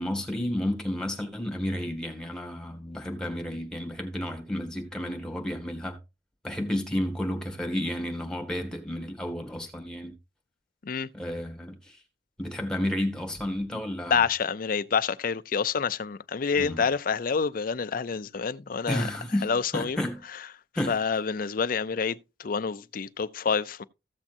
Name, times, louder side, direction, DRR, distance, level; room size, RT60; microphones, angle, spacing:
voice 1, 0.0-6.0 6.4-10.2 11.1-12.0 12.4-14.2 16.6-16.8 18.9-20.2 20.8-21.0, left 1 dB, 5° left, 2.0 m, -31 dB
voice 2, 14.1-19.0 19.4-20.0 20.9-23.8, left 5 dB, 55° left, 0.5 m, -28 dB
15.0 x 7.3 x 2.6 m
head